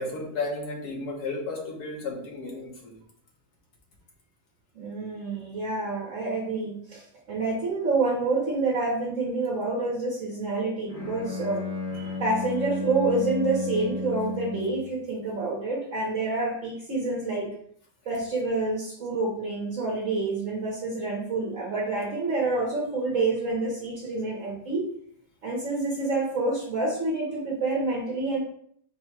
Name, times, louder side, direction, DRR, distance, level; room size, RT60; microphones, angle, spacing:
voice 1, 0.0-3.0, left 3 dB, 70° left, -2 dB, 1.5 m, -33 dB
voice 2, 4.7-11.6 11.9-17.5 18.0-24.9 25.4-28.4, right 3 dB, 55° right, -6 dB, 1.2 m, -28 dB
Bowed string instrument, 10.9-14.9, left 3 dB, 35° left, 0.6 m, -33 dB
4.3 x 2.3 x 4.6 m, 0.63 s
omnidirectional pair, 1.8 m